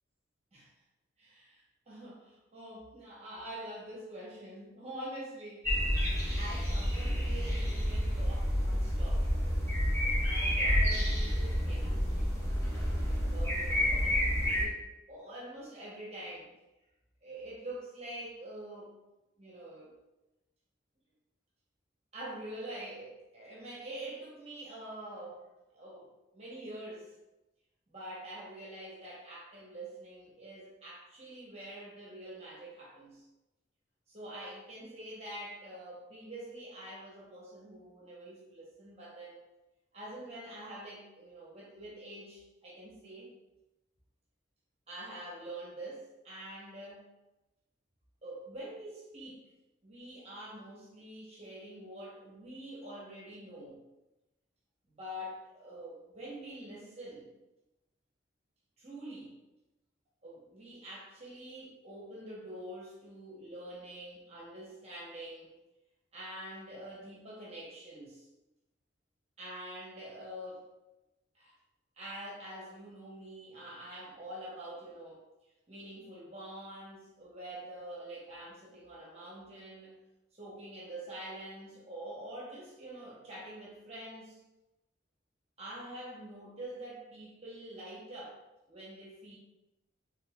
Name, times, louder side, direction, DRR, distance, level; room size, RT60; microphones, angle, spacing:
voice 1, 1.2-9.2 10.1-12.3 13.0-16.5 17.2-18.9 19.4-19.9 22.1-25.4 25.7-26.1 26.3-27.1 27.9-33.3 34.1-39.4 39.9-43.3 44.9-47.1 48.2-49.5 49.8-53.8 54.9-57.3 58.8-59.4 60.2-65.5 66.1-68.3 69.4-70.7 71.3-71.5 72.0-75.2 75.7-80.0 80.3-84.4 85.6-88.4 88.7-89.3, right 1 dB, 30° right, -6 dB, 0.9 m, -46 dB
sound 1, 5.6-14.6, equal, 15° left, 1.2 m, -29 dB
3.9 x 3.4 x 2.3 m, 0.99 s
head